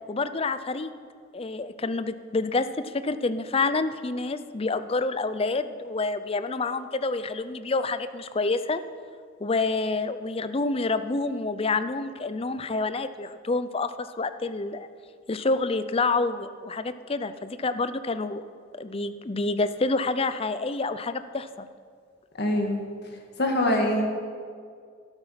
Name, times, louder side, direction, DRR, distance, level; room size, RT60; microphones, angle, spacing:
voice 1, 0.1-0.9 1.3-8.8 9.4-14.9 15.3-18.4 18.8-21.7, left 3 dB, 30° left, 12 dB, 0.5 m, -28 dB
voice 2, 22.4-22.8 23.4-24.1, left 1 dB, 55° left, 2 dB, 1.8 m, -23 dB
13.0 x 12.5 x 5.8 m, 2.1 s
head